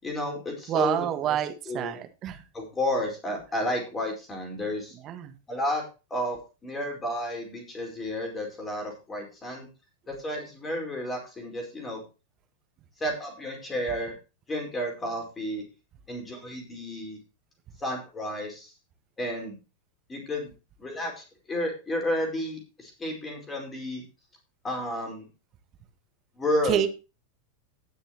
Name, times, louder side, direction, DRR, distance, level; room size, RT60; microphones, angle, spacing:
voice 1, 0.0-1.4 1.7-2.0 2.5-4.9 5.5-5.8 6.1-9.7 10.1-12.0 13.0-14.1 14.5-15.6 16.1-17.2 17.8-18.7 19.2-19.6 20.1-20.5 20.8-24.0 24.6-25.3 26.4-26.8, left 1 dB, 15° left, 1 dB, 4.6 m, -31 dB
voice 2, 0.7-2.4 5.0-5.3 26.7-26.9, right 11 dB, 35° right, 7 dB, 1.6 m, -28 dB
19.0 x 6.4 x 3.0 m, 0.30 s
figure-of-eight pair, 90°, 0 cm